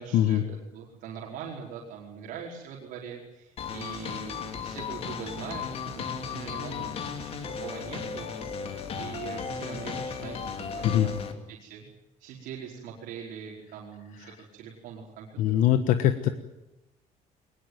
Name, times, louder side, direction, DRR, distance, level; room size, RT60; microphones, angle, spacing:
voice 1, 0.0-5.7 5.9-11.9 12.2-15.6, right 7 dB, 85° right, -2 dB, 4.7 m, -42 dB
sound 1, 3.6-11.3, left 6 dB, 45° left, 2.7 m, -35 dB
voice 2, 15.4-16.3, left 11 dB, 65° left, 9 dB, 1.3 m, -22 dB
21.5 x 21.0 x 9.4 m, 0.92 s
cardioid pair, 170°, 14 cm